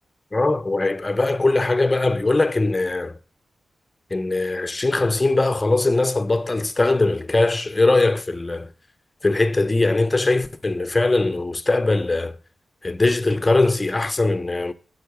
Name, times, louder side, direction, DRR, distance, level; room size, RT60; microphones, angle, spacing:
voice 1, 0.3-3.1 4.1-8.7 9.2-12.4 12.8-14.7, left 2 dB, 25° left, 0.6 m, -21 dB
6.4 x 4.4 x 5.9 m
cardioid pair, 55°, 0 cm